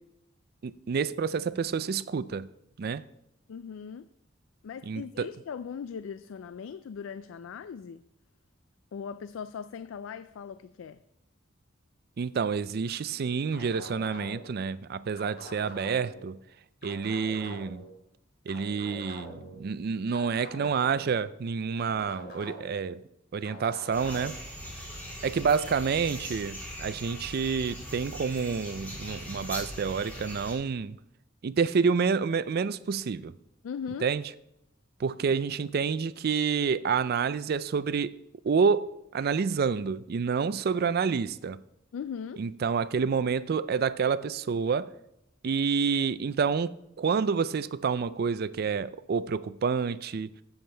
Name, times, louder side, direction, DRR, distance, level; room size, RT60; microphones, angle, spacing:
voice 1, 0.6-2.5 2.8-3.0 4.9-5.3 12.2-16.4 16.8-17.8 18.5-23.0 23.3-24.4 25.2-31.0 31.4-33.3 34.0-34.2 35.0-38.1 38.4-41.6 42.4-44.9 45.4-50.3, right 5 dB, 50° right, 0.4 m, -28 dB
voice 2, 3.5-4.1 4.6-8.0 8.9-11.0 33.6-34.1 41.9-42.4, left 6 dB, 80° left, 0.3 m, -39 dB
sound 1, 13.5-14.6 15.2-16.2 16.8-17.9 18.5-19.5 20.1-21.2 21.8-22.8 23.4-24.3, left 1 dB, 55° left, 4.3 m, -44 dB
sound 2, 23.9-30.5, equal, 10° left, 3.5 m, -40 dB
15.0 x 7.2 x 3.4 m
head